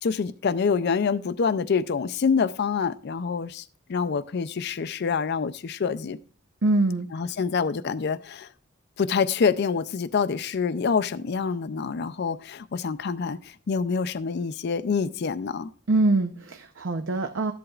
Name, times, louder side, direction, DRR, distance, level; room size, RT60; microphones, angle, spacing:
voice 1, 0.0-3.6 3.9-6.2 7.1-8.5 9.0-15.7, left 5 dB, 50° left, 0.4 m, -26 dB
voice 2, 6.6-7.1 15.9-17.5, right 2 dB, 60° right, 0.6 m, -23 dB
13.5 x 7.9 x 2.4 m
head